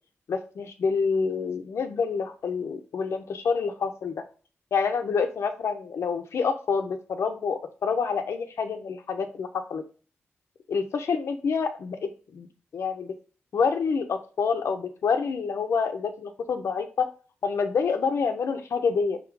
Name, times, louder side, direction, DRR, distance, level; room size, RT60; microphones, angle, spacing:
voice 1, 0.3-4.2 4.7-9.8 10.7-12.5 12.7-13.1 13.5-17.1 17.4-19.2, left 5 dB, 75° left, 6 dB, 0.8 m, -27 dB
5.7 x 3.6 x 4.7 m, 0.38 s
wide cardioid pair, 145°, 5 cm